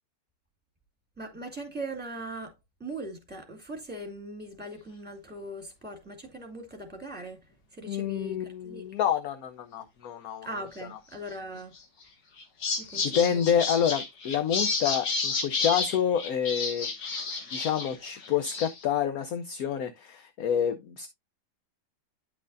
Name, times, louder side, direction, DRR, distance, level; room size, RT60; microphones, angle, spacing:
voice 1, 1.2-2.5 2.8-7.4 7.7-8.8 10.4-11.7 12.8-13.4, right 2 dB, 5° right, 2.1 m, -40 dB
voice 2, 7.9-10.5 10.9-11.0 13.0-16.9 17.5-21.1, left 8 dB, 65° left, 1.1 m, -28 dB
sound 1, 11.8-12.0 12.4-18.0 18.2-18.8, left 4 dB, 85° left, 2.1 m, -31 dB
9.9 x 6.1 x 2.6 m
omnidirectional pair, 1.8 m